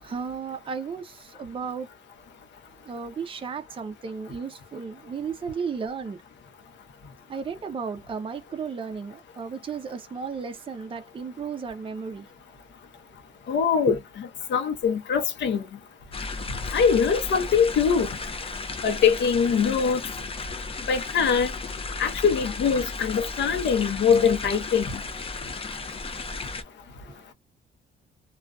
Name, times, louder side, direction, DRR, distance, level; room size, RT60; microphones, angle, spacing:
voice 1, 0.0-1.9 2.8-6.2 7.3-12.3 13.8-14.0 27.0-27.2, right 5 dB, 25° right, 0.5 m, -34 dB
voice 2, 13.5-14.0 14.5-15.6 16.7-18.1 18.8-20.0 20.9-21.5 22.0-24.9, left 6 dB, 65° left, 0.8 m, -22 dB
sound 1, 16.1-26.6, left 3 dB, 30° left, 0.5 m, -34 dB
2.4 x 2.3 x 2.2 m
cardioid pair, 90°, 20 cm